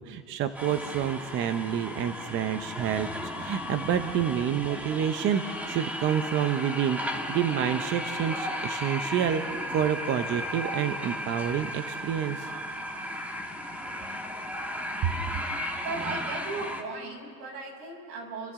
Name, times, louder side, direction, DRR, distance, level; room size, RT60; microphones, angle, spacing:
voice 1, 0.0-9.4 9.7-12.5 15.0-15.1, right 9 dB, 25° right, 9 dB, 0.7 m, -28 dB
sound 1, 0.5-16.8, equal, 5° right, 1.3 m, -35 dB
voice 2, 15.8-18.5, right 3 dB, 70° right, 1 dB, 6.3 m, -37 dB
29.5 x 24.5 x 3.7 m, 2.2 s
supercardioid pair, 140°, 49 cm